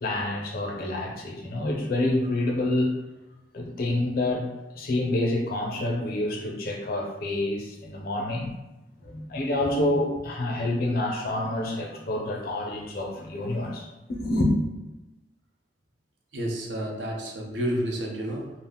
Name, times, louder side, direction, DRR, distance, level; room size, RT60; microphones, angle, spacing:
voice 1, 0.0-2.9 3.5-4.5 4.7-8.5 9.0-13.8 14.1-14.5, left 1 dB, 55° left, 0 dB, 0.5 m, -27 dB
voice 2, 16.3-18.5, equal, 85° right, 0 dB, 0.6 m, -30 dB
2.4 x 2.0 x 3.5 m, 1.0 s
head